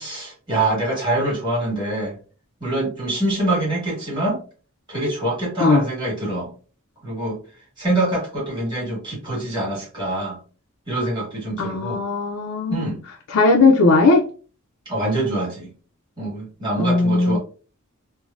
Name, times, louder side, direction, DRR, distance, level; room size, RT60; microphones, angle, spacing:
voice 1, 0.0-2.1 2.6-4.4 4.9-6.5 7.0-7.4 7.8-10.4 10.9-12.0 12.7-13.0 14.8-15.7 16.2-17.4, right 1 dB, 20° right, 1.4 m, -24 dB
voice 2, 11.6-12.9 13.3-14.2 16.8-17.4, left 3 dB, 70° left, 0.4 m, -17 dB
3.1 x 2.1 x 2.4 m
head